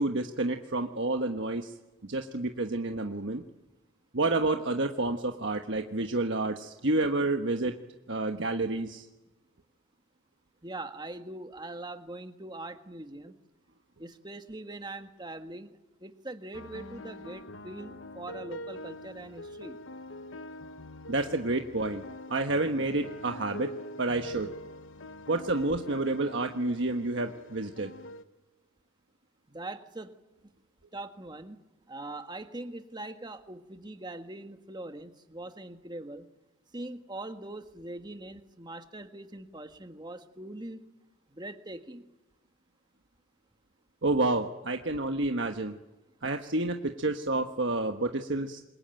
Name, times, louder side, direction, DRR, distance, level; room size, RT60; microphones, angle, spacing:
voice 1, 0.0-1.7 2.0-3.4 4.1-7.8 8.1-9.1 21.1-22.0 22.3-23.7 24.0-24.5 25.3-27.9 44.0-45.8 46.2-48.6, right 2 dB, 65° right, 5 dB, 1.3 m, -29 dB
voice 2, 10.6-13.3 14.0-19.8 29.5-30.1 30.9-31.6 31.9-36.3 36.7-40.8 41.3-42.0, right 2 dB, 20° right, 7 dB, 1.6 m, -42 dB
sound 1, 16.5-28.2, left 1 dB, 75° left, 1.2 m, -44 dB
27.0 x 22.5 x 9.1 m, 1.0 s
head